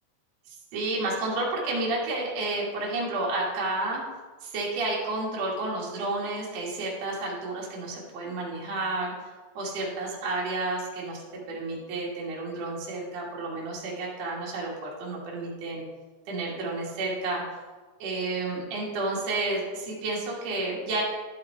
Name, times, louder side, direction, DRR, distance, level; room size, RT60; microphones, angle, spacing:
voice 1, 0.5-4.0 4.4-9.3 9.6-15.8 16.3-17.4 18.0-21.0, right 2 dB, 55° right, -4 dB, 2.1 m, -31 dB
11.0 x 4.8 x 4.7 m, 1.4 s
omnidirectional pair, 5.0 m